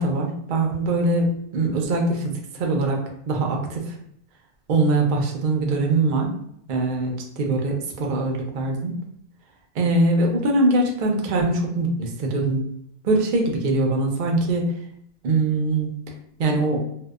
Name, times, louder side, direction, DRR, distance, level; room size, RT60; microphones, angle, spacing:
voice 1, 0.0-3.9 4.7-6.3 6.7-9.0 9.8-12.7 13.0-14.8 15.2-15.9 16.4-16.8, right 2 dB, 70° right, 1 dB, 0.4 m, -22 dB
2.6 x 2.1 x 2.2 m, 0.71 s
omnidirectional pair, 1.4 m